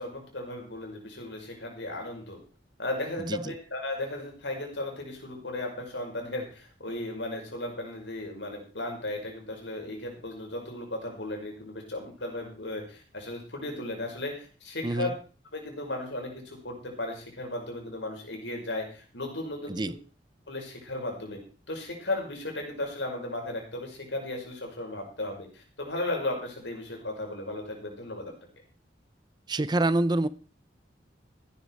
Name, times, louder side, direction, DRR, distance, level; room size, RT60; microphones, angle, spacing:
voice 1, 0.0-2.4 2.8-15.1 15.5-19.8 20.5-21.4 21.7-28.3, left 2 dB, 85° left, 1 dB, 5.7 m, -35 dB
voice 2, 3.2-3.5 14.8-15.1 19.7-20.0 29.5-30.3, right 2 dB, 25° right, 16 dB, 0.5 m, -27 dB
15.5 x 10.5 x 4.8 m, 0.38 s
head